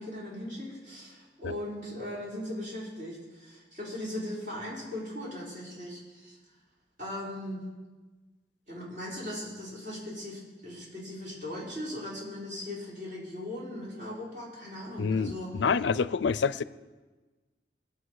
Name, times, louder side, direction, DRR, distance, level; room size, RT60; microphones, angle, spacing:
voice 1, 0.0-6.4 7.0-7.6 8.7-15.5, left 1 dB, 50° right, -6 dB, 4.9 m, -39 dB
voice 2, 15.0-16.6, left 5 dB, 85° left, 17 dB, 0.5 m, -27 dB
21.5 x 8.2 x 4.8 m, 1.3 s
head